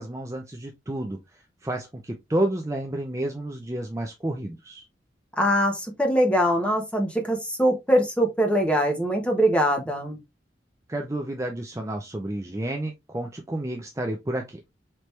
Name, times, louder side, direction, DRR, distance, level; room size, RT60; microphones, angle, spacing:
voice 1, 0.0-4.8 10.9-14.6, right 1 dB, 15° right, 0.5 m, -30 dB
voice 2, 5.4-10.2, equal, 5° left, 1.1 m, -22 dB
4.5 x 3.2 x 3.2 m
head